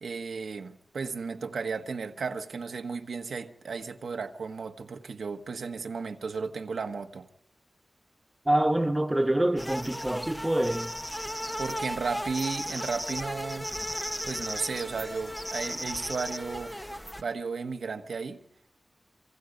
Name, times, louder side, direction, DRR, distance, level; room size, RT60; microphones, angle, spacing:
voice 1, 0.0-7.3 11.6-13.7 14.2-16.7 17.2-18.4, right 5 dB, 90° right, 1.4 m, -34 dB
voice 2, 8.4-10.9, right 1 dB, 15° right, 1.4 m, -26 dB
sound 1, 9.6-17.2, equal, 5° left, 0.9 m, -35 dB
26.5 x 24.5 x 5.3 m
cardioid pair, 60°, 0 cm